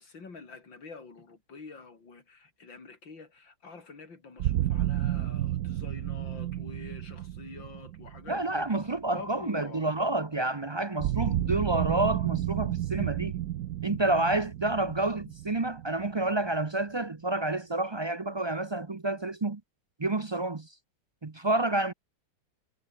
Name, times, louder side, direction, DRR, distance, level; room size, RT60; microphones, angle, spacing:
voice 1, 0.0-8.9 9.1-9.8, left 4 dB, 90° left, 4.5 m, -47 dB
sound 1, 4.4-9.4 11.0-16.7, right 13 dB, 65° right, 1.0 m, -32 dB
voice 2, 8.3-13.4 13.8-19.6 20.0-20.7 21.2-21.9, right 2 dB, 40° right, 0.3 m, -29 dB
omnidirectional pair, 2.0 m